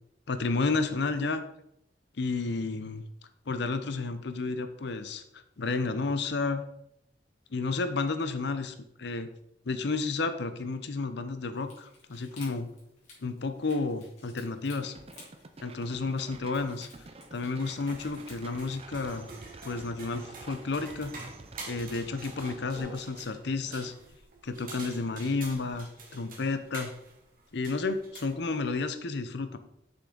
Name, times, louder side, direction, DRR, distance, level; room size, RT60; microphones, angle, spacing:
voice 1, 0.3-1.4 2.2-3.0 3.5-6.6 7.5-9.3 9.7-12.7 13.2-14.9 15.6-16.9 17.3-19.3 19.6-21.1 21.7-23.9 24.4-26.9 27.5-29.6, left 3 dB, 70° left, 9 dB, 0.7 m, -31 dB
sound 1, 11.5-18.7, left 3 dB, 40° left, 3.2 m, -56 dB
sound 2, 14.8-22.8, right 3 dB, 35° right, 0.6 m, -49 dB
sound 3, 17.2-28.9, right 3 dB, 50° right, 1.8 m, -47 dB
6.9 x 6.0 x 3.9 m, 0.79 s
head